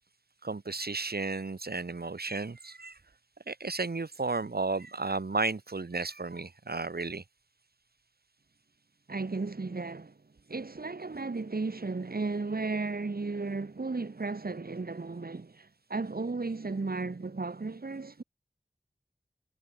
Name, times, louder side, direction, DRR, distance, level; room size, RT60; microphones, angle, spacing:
voice 1, 0.4-3.0 3.5-7.2, right 3 dB, 90° right, 3.1 m, -33 dB
voice 2, 9.1-10.1 10.5-18.2, right 3 dB, 75° right, 2.0 m, -34 dB
wide cardioid pair, 50°, 16 cm